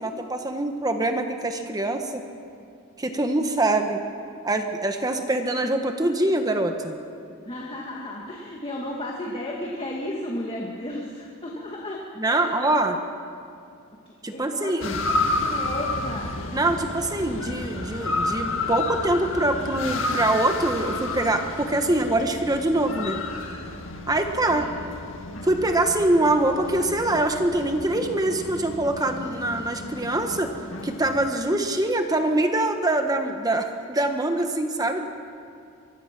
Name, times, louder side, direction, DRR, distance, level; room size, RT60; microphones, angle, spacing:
voice 1, 0.0-2.2 3.0-4.0 4.4-7.0 12.2-13.0 14.2-15.0 16.5-23.2 24.1-24.7 25.4-30.5 30.8-35.1, right 2 dB, 20° right, 5 dB, 1.2 m, -24 dB
voice 2, 7.5-12.7 14.1-16.4 24.5-24.7, left 1 dB, 25° left, -1 dB, 2.0 m, -34 dB
sound 1, 14.8-31.3, left 2 dB, 65° left, 2.1 m, -31 dB
24.5 x 21.5 x 6.0 m, 2.5 s
head